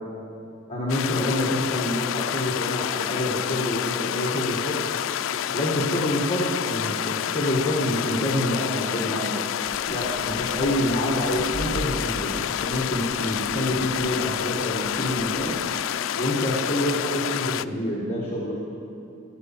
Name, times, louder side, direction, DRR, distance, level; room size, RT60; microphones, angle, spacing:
voice 1, 0.7-4.8 5.5-9.4 9.9-15.6 16.1-18.6, left 1 dB, 30° left, -5 dB, 1.6 m, -27 dB
sound 1, 0.9-17.6, left 10 dB, 75° left, 0.3 m, -28 dB
sound 2, 9.6-15.7, right 1 dB, 80° right, 0.8 m, -40 dB
14.5 x 8.3 x 7.4 m, 2.7 s
head